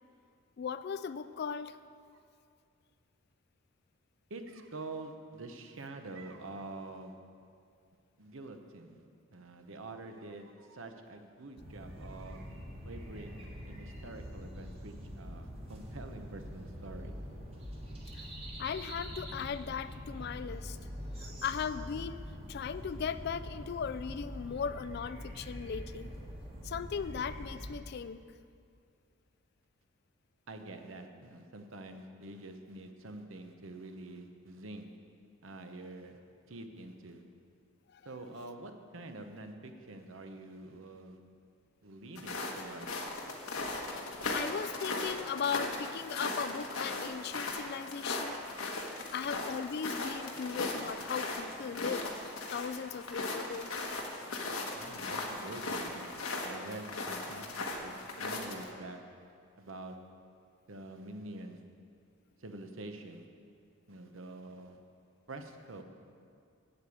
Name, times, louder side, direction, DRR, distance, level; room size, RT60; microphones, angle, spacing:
voice 1, 0.6-1.8 18.1-18.3 18.6-20.8 21.2-22.2 22.5-26.1 26.6-28.2 37.9-38.0 44.3-48.4 49.1-53.8, left 6 dB, 50° left, 13 dB, 0.3 m, -37 dB
voice 2, 4.3-7.2 8.2-9.0 9.3-12.5 12.8-17.1 30.5-34.8 35.4-36.2 36.5-37.2 38.0-41.2 41.8-42.9 54.7-56.1 56.4-59.0 59.6-60.0 60.7-61.6 62.4-63.2 63.9-64.8 65.3-65.8, right 2 dB, 70° right, 6 dB, 0.9 m, -46 dB
sound 1, 11.6-27.8, equal, 25° right, 1.5 m, -44 dB
sound 2, 42.2-58.6, left 2 dB, 85° left, 1.3 m, -38 dB
8.0 x 8.0 x 8.4 m, 2.3 s
head